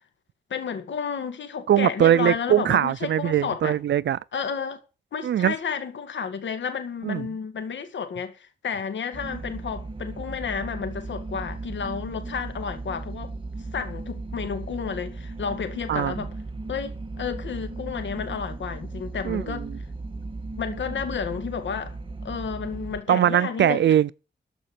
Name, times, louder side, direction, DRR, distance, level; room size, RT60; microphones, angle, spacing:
voice 1, 0.5-3.7 4.3-4.8 5.1-13.3 13.7-16.3 16.7-19.7 20.6-22.0 22.2-23.9, left 6 dB, 85° left, 2.1 m, -31 dB
voice 2, 1.7-4.2 5.2-5.5 7.0-7.2 15.9-16.1 19.2-19.8 23.1-24.1, right 11 dB, 75° right, 0.5 m, -21 dB
sound 1, 9.1-23.0, right 3 dB, 30° right, 1.6 m, -36 dB
13.5 x 5.3 x 7.3 m
wide cardioid pair, 100°, 19 cm